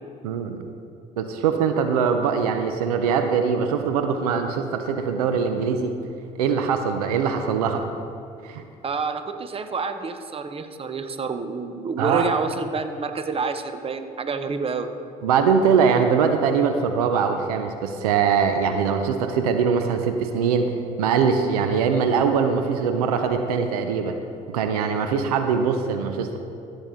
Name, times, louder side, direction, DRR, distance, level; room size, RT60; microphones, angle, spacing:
voice 1, 0.2-0.6 1.2-5.9 6.4-7.8 8.4-8.6 12.0-12.3 15.2-20.7 21.0-24.2 24.5-26.4, right 6 dB, 85° right, 7 dB, 0.7 m, -22 dB
voice 2, 8.8-14.9, right 4 dB, 30° right, 9 dB, 0.9 m, -28 dB
14.0 x 7.3 x 3.7 m, 2.6 s
hypercardioid pair, 65°, 19 cm